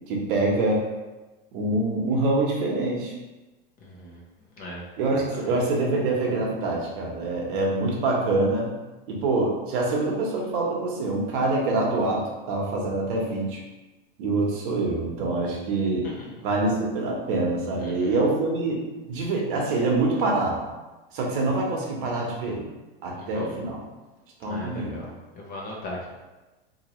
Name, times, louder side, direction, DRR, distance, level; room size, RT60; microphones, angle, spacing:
voice 1, 0.1-0.9 1.5-3.1 5.0-8.7 9.1-13.6 14.2-16.1 16.4-20.6 21.1-22.7 23.0-23.8 24.4-25.0, right 2 dB, 60° right, -1 dB, 1.1 m, -25 dB
voice 2, 3.8-4.2 4.6-4.8 5.1-5.5 16.0-16.3 17.8-18.2 23.1-23.6 24.4-26.2, left 1 dB, 30° left, -3 dB, 0.8 m, -39 dB
3.7 x 2.8 x 3.0 m, 1.1 s
supercardioid pair, 135°, 30 cm